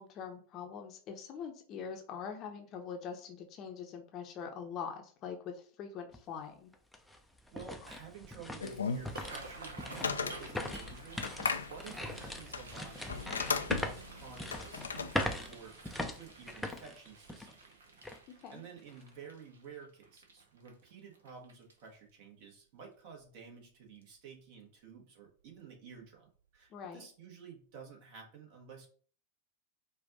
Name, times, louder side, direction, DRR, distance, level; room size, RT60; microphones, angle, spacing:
voice 1, 0.0-6.7 18.4-18.6 26.7-27.0, left 6 dB, 35° left, 4 dB, 0.8 m, -43 dB
sound 1, 6.1-6.2 6.7-17.6 18.0-18.2 18.8-19.1, left 1 dB, 5° left, 0.5 m, -41 dB
voice 2, 7.5-18.0 18.3-28.9, right 6 dB, 45° right, 1 dB, 1.4 m, -52 dB
sound 2, 8.6-15.5, left 5 dB, 70° left, 0.4 m, -38 dB
sound 3, 9.0-22.1 22.6-22.9 23.2-23.6 24.0-24.2 25.4-25.6 25.9-26.1 26.5-26.6, right 3 dB, 65° right, 0.8 m, -52 dB
5.0 x 2.5 x 3.9 m, 0.43 s
figure-of-eight pair, 90°, 0 cm